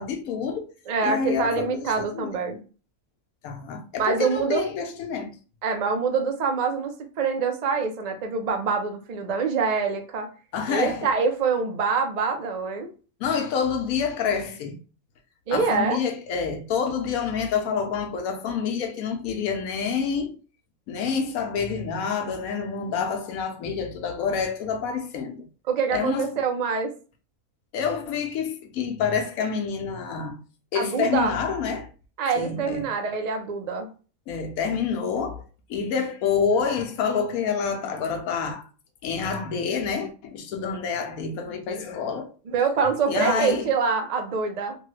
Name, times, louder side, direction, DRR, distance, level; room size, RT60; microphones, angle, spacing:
voice 1, 0.0-0.7 1.0-2.4 3.4-5.3 10.5-11.1 13.2-14.8 15.5-20.3 20.9-25.4 25.9-26.4 27.7-30.4 30.7-31.9 32.4-32.9 34.3-35.4 35.7-38.7 39.0-42.3 43.1-43.7, left 6 dB, 80° left, 1.1 m, -27 dB
voice 2, 0.9-2.6 4.0-4.7 5.6-10.3 10.7-12.9 15.5-16.0 25.7-26.9 30.7-31.3 32.2-33.9 42.5-44.8, right 5 dB, 70° right, 0.4 m, -25 dB
3.1 x 2.2 x 3.1 m
omnidirectional pair, 1.5 m